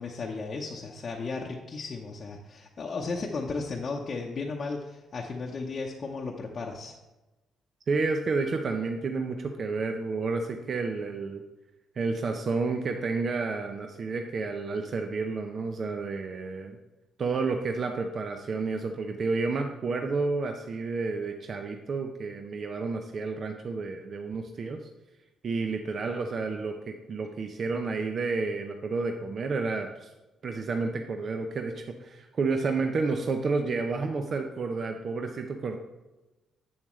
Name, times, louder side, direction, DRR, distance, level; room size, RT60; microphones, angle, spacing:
voice 1, 0.0-7.0, left 4 dB, 45° left, -1 dB, 0.8 m, -35 dB
voice 2, 7.9-11.4 12.0-16.8 17.2-24.8 25.4-30.1 30.4-35.8, right 4 dB, 50° right, 5 dB, 0.6 m, -30 dB
8.0 x 7.1 x 3.1 m, 1.1 s
cardioid pair, 90°, 0 cm